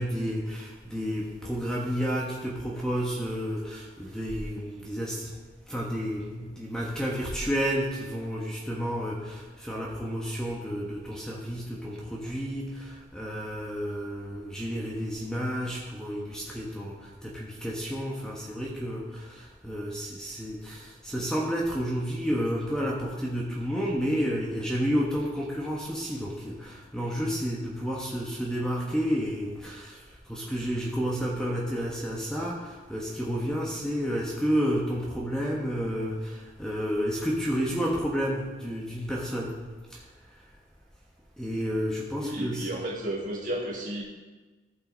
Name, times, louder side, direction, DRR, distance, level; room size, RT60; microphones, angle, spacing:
voice 1, 0.0-5.3 5.7-39.6 39.9-40.0 41.4-42.7, equal, 5° left, -3 dB, 1.1 m, -31 dB
voice 2, 42.2-44.0, right 1 dB, 45° right, -3 dB, 2.1 m, -32 dB
14.5 x 5.6 x 3.9 m, 1.3 s
head